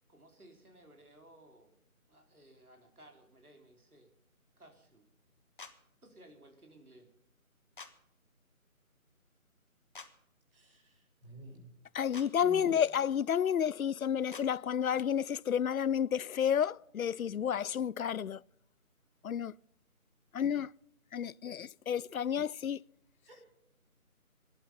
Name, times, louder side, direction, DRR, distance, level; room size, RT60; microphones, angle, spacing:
voice 1, 0.1-1.8 2.1-4.1 4.6-5.1 6.0-7.1, right 1 dB, 90° right, 4.0 m, -58 dB
sound 1, 5.6-5.7 7.8-7.9 9.9-10.1 12.1-12.3 14.3-14.5, left 4 dB, 35° left, 1.3 m, -47 dB
voice 2, 10.5-11.7 12.4-12.8 23.2-23.4, right 2 dB, 40° right, 5.4 m, -50 dB
voice 3, 11.9-18.4 19.2-19.5 20.3-20.7 21.1-22.8, left 8 dB, 70° left, 0.5 m, -31 dB
16.5 x 11.5 x 5.5 m
figure-of-eight pair, 165°, 43 cm